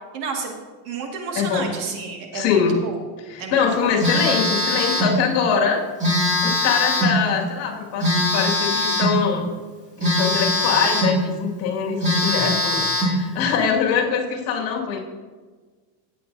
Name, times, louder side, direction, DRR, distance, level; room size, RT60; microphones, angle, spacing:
voice 1, 0.1-0.5 0.8-3.0 3.4-3.6 3.8-3.9, right 5 dB, 80° right, 2 dB, 2.1 m, -30 dB
voice 2, 1.4-1.8 2.3-2.8 3.3-5.8 6.4-9.5 10.0-15.0, left 6 dB, 55° left, -1 dB, 2.2 m, -23 dB
Telephone, 4.0-5.2 6.0-7.2 8.0-9.2 10.0-11.2 11.6-11.7 12.0-13.2, left 1 dB, 15° right, 2.3 m, -21 dB
15.5 x 8.4 x 2.7 m, 1.4 s
cardioid pair, 175°, 49 cm